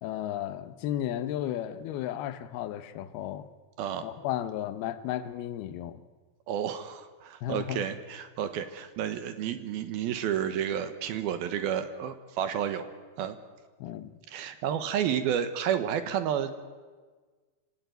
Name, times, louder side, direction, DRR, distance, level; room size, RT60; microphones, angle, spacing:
voice 1, 0.0-3.5 4.0-6.0 7.4-7.8 13.8-14.1, left 12 dB, 70° left, 12 dB, 2.7 m, -34 dB
voice 2, 6.5-12.9 13.2-13.4 14.3-16.6, right 9 dB, 70° right, 10 dB, 2.7 m, -31 dB
26.0 x 17.5 x 9.3 m, 1.4 s
omnidirectional pair, 5.0 m